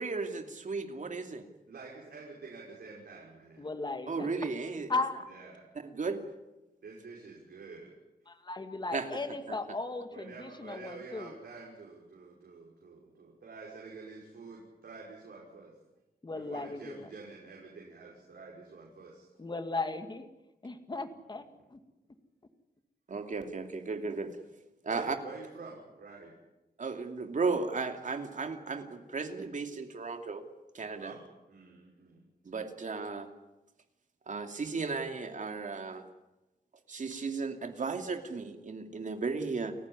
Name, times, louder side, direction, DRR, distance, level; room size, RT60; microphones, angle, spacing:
voice 1, 0.0-1.5 4.1-5.0 5.8-6.3 8.9-9.2 9.5-9.6 23.1-24.4 24.8-25.2 26.8-30.4 30.7-31.1 32.4-33.3 34.3-36.0 36.9-39.8, right 4 dB, 50° right, 6 dB, 2.7 m, -35 dB
voice 2, 1.7-3.7 5.3-5.8 6.8-7.9 10.1-15.8 16.3-19.3 24.9-26.3 31.0-31.2 31.5-32.3, right 4 dB, 85° right, -3 dB, 5.8 m, -48 dB
voice 3, 3.6-4.3 4.9-5.3 8.3-11.3 16.2-17.0 19.4-20.3 20.6-21.4 21.7-21.8, left 3 dB, 25° left, 8 dB, 2.1 m, -36 dB
30.0 x 15.5 x 9.9 m, 1.0 s
wide cardioid pair, 150°, 16 cm